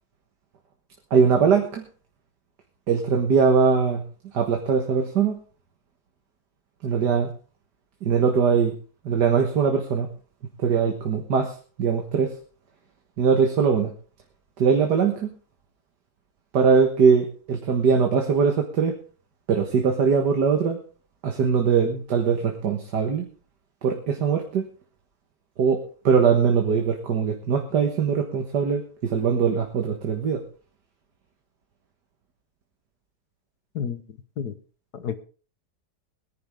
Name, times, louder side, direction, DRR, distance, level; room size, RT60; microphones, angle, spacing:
voice 1, 1.1-1.8 2.9-4.0 4.3-5.4 6.8-7.3 8.0-8.7 9.1-10.1 10.6-11.5 11.8-12.3 13.2-13.9 14.6-15.3 16.5-19.0 19.5-20.8 21.2-23.3 23.8-24.7 25.6-25.8 26.0-30.4, right 6 dB, 85° right, 4 dB, 2.0 m, -21 dB
voice 2, 34.9-35.2, left 7 dB, 70° left, 12 dB, 1.7 m, -30 dB
22.0 x 10.5 x 3.6 m, 0.38 s
omnidirectional pair, 1.7 m